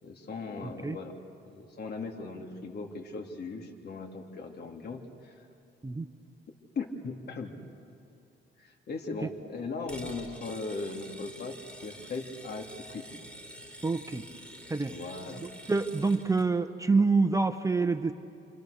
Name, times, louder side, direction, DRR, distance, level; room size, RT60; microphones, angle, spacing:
voice 1, 0.0-1.2 1.5-5.3 6.7-7.5 8.6-13.1 14.8-15.4, left 3 dB, 55° left, 2 dB, 3.2 m, -38 dB
voice 2, 0.6-1.0 5.8-6.1 13.8-14.2 14.7-14.9 15.7-18.1, right 4 dB, 15° right, 9 dB, 1.1 m, -26 dB
sound 1, 9.9-16.5, right 1 dB, 5° left, 3.4 m, -47 dB
29.5 x 27.0 x 6.7 m, 2.7 s
cardioid pair, 90°, 20 cm